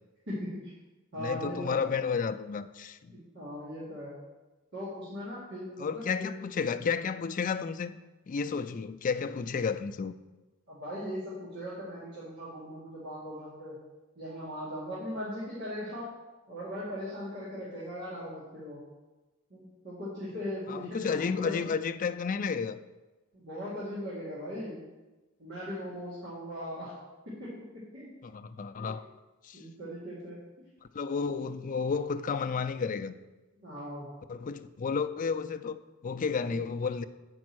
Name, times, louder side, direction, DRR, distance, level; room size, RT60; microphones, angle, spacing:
voice 1, 0.3-0.6 1.1-1.8 3.1-4.2 4.7-6.3 10.7-13.8 14.2-16.1 16.5-18.8 19.5-21.6 23.3-24.9 25.4-27.0 27.3-28.1 28.8-29.0 29.5-30.5 33.6-34.2 36.4-36.6, equal, 55° right, 2.3 m, -39 dB
voice 2, 1.2-3.1 5.8-8.0 8.3-10.1 20.7-22.8 28.2-29.0 29.4-29.6 30.9-33.1 34.3-35.8 36.0-37.0, left 5 dB, 40° left, 0.4 m, -32 dB
8.3 x 5.3 x 6.1 m
head